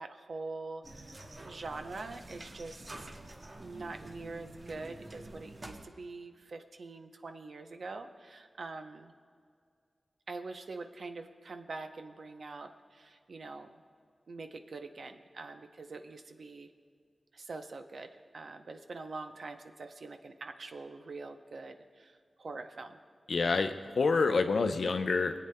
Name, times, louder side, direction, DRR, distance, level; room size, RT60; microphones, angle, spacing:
voice 1, 0.0-3.1 3.6-9.1 10.3-13.8 14.3-16.7 17.3-23.0, right 3 dB, 75° right, 6 dB, 0.6 m, -44 dB
sound 1, 0.8-5.8, right 2 dB, 45° right, 0.9 m, -48 dB
voice 2, 23.3-25.3, left 4 dB, 75° left, 7 dB, 0.5 m, -27 dB
21.5 x 8.4 x 2.2 m, 2.2 s
cardioid pair, 55°, 0 cm